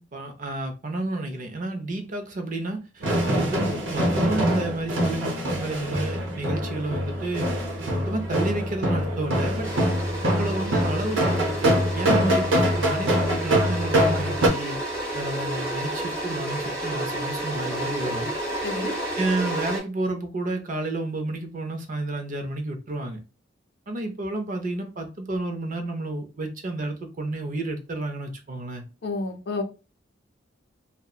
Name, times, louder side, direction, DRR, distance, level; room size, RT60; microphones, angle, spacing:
voice 1, 0.0-7.5 7.9-9.7 10.2-14.8 15.1-18.3 19.2-23.2 23.9-28.8, right 2 dB, 45° right, 0.5 m, -31 dB
sound 1, 3.0-14.5, equal, 70° right, 0.8 m, -24 dB
sound 2, 9.6-19.8, right 1 dB, 15° right, 1.1 m, -31 dB
voice 2, 18.6-18.9 29.0-29.6, left 3 dB, 55° left, 0.5 m, -29 dB
2.7 x 2.0 x 2.3 m
head